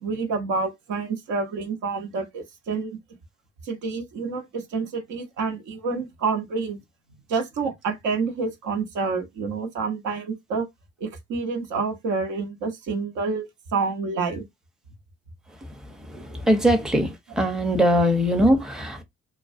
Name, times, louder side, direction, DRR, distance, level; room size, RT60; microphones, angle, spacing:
voice 1, 0.0-3.0 3.6-6.8 7.3-10.7 11.0-14.5, right 4 dB, 70° right, 0.8 m, -28 dB
voice 2, 16.1-17.1 17.4-19.0, equal, ahead, 0.6 m, -21 dB
2.3 x 2.1 x 2.5 m
hypercardioid pair, 50°, 31 cm